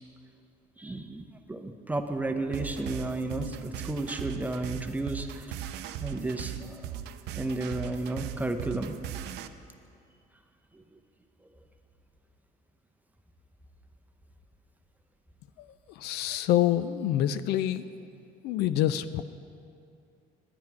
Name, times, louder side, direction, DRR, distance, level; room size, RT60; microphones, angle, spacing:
voice 1, 0.8-1.2 1.5-5.6 6.0-6.9 7.4-9.0 10.7-10.8, right 2 dB, 10° right, 5 dB, 0.7 m, -33 dB
sound 1, 2.5-9.5, right 10 dB, 85° right, 0.5 m, -38 dB
voice 2, 16.0-17.8 18.4-19.2, left 12 dB, 85° left, 13 dB, 0.4 m, -26 dB
11.0 x 9.5 x 4.6 m, 2.5 s
cardioid pair, 110°, 17 cm